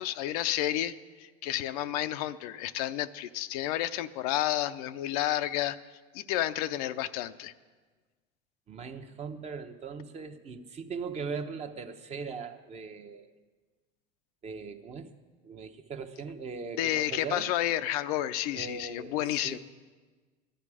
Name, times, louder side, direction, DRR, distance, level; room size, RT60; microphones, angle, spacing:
voice 1, 0.0-5.8 6.1-7.5 16.8-19.6, left 13 dB, 75° left, 11 dB, 0.6 m, -31 dB
voice 2, 8.7-13.3 14.4-15.1 15.4-17.5 18.5-19.6, right 5 dB, 35° right, 7 dB, 0.9 m, -39 dB
14.5 x 11.5 x 4.9 m, 1.4 s
supercardioid pair, 100°, 20 cm